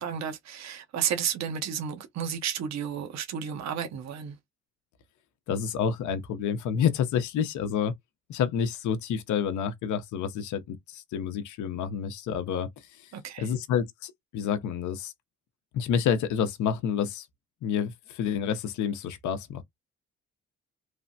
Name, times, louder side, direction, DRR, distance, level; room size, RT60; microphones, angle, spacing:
voice 1, 0.0-4.4 13.1-13.5, right 8 dB, 65° right, 0.8 m, -32 dB
voice 2, 5.5-7.9 8.3-13.1 13.4-15.1 15.7-17.3 17.6-19.6, left 8 dB, 75° left, 0.6 m, -29 dB
3.2 x 2.1 x 2.6 m
cardioid pair, 90°, 30 cm